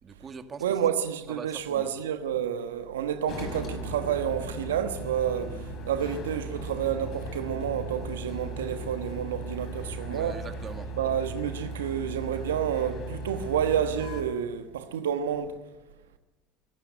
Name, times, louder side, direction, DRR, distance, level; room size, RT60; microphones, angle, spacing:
voice 1, 0.0-0.7 1.3-1.9 10.1-10.9, right 5 dB, 30° right, 2.0 m, -42 dB
voice 2, 0.6-5.6 5.9-10.4 11.0-15.6, right 9 dB, 85° right, 1.2 m, -29 dB
sound 1, 3.3-14.2, right 1 dB, 50° left, 4.8 m, -37 dB
23.0 x 13.0 x 9.7 m
hypercardioid pair, 85°, 0 cm